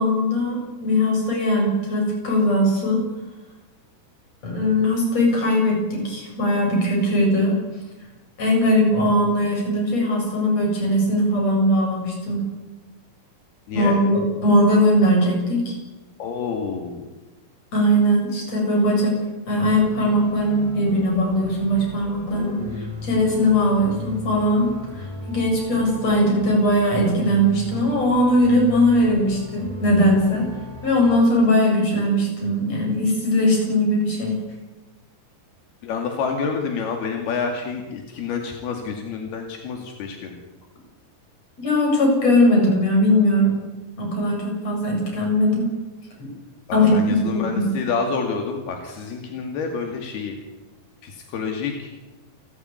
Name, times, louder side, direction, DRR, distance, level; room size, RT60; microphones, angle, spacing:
voice 1, 0.0-3.0 4.4-7.6 8.4-12.4 13.7-15.7 17.7-19.2 19.5-30.4 30.8-34.4 41.6-43.5 44.0-45.7 46.2-46.3 46.7-46.9 47.3-47.6, equal, 40° left, 0 dB, 8.8 m, -20 dB
voice 2, 13.7-14.0 16.2-17.1 22.3-22.9 35.8-40.4 46.7-50.4 51.0-51.9, left 5 dB, 80° left, 3 dB, 4.3 m, -28 dB
sound 1, 19.6-31.2, left 3 dB, 45° right, 5.6 m, -37 dB
29.0 x 14.0 x 9.6 m, 1.1 s
omnidirectional pair, 4.5 m